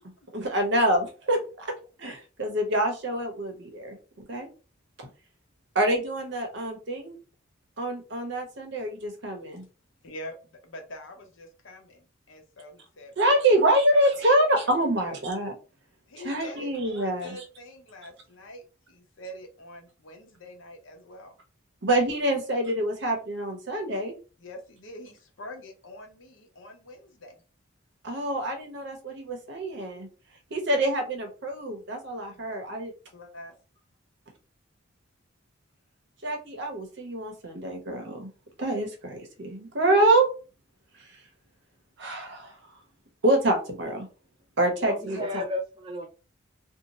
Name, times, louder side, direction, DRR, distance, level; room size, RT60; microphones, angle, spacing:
voice 1, 0.3-1.7 2.0-4.5 5.7-7.2 7.8-9.6 13.2-15.5 16.2-17.3 21.8-24.1 28.0-30.1 30.5-32.9 36.2-38.3 38.6-40.3 42.0-42.5 43.2-44.1 44.6-45.4, right 1 dB, 55° right, 0.8 m, -26 dB
voice 2, 10.0-14.0 16.1-18.6 18.9-21.3 24.4-27.4 32.3-32.6 33.1-33.5, left 1 dB, 65° left, 0.8 m, -45 dB
voice 3, 44.8-46.1, left 2 dB, 25° right, 0.3 m, -32 dB
2.7 x 2.1 x 2.9 m
head